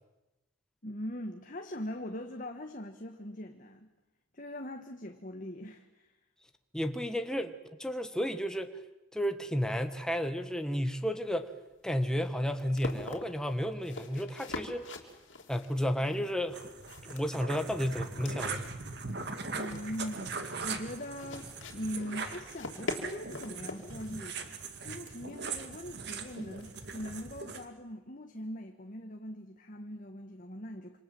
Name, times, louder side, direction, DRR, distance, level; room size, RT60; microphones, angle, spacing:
voice 1, 0.8-3.9 4.3-6.1 19.5-24.5 24.8-31.0, equal, 40° left, 1.7 m, -41 dB
voice 2, 6.7-8.7 9.1-11.5 11.8-14.9 15.5-16.6 17.0-18.6, equal, 5° left, 1.4 m, -32 dB
sound 1, 11.2-27.6, left 2 dB, 65° left, 3.6 m, -45 dB
sound 2, 16.5-27.6, right 4 dB, 55° right, 2.3 m, -40 dB
27.5 x 27.0 x 7.9 m
head